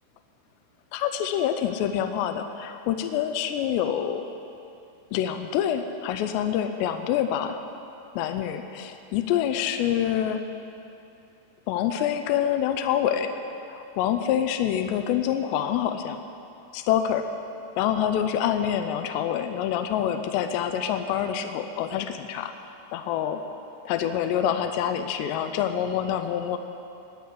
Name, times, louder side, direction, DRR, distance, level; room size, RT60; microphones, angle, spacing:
voice 1, 0.9-4.3 5.1-7.6 8.2-10.4 11.7-13.3 13.7-16.2 16.7-17.3 17.8-22.5 22.9-23.4 23.9-26.6, left 9 dB, 90° left, 7 dB, 2.5 m, -26 dB
19.5 x 6.6 x 9.8 m, 2.7 s
omnidirectional pair, 5.6 m